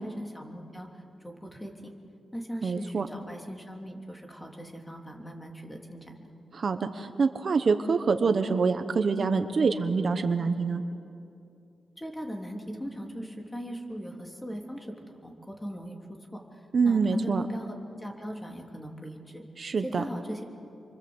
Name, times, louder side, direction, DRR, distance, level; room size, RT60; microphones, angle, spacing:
voice 1, 0.0-0.9 1.2-1.9 2.3-6.1 12.0-14.9 15.2-15.9 16.3-16.4 16.8-19.4 19.8-20.4, equal, 10° left, 2 dB, 3.2 m, -39 dB
voice 2, 2.6-3.1 6.5-10.8 16.7-17.5 19.6-20.0, right 4 dB, 50° right, 8 dB, 1.1 m, -26 dB
28.5 x 24.0 x 8.0 m, 2.6 s
wide cardioid pair, 110°, 0 cm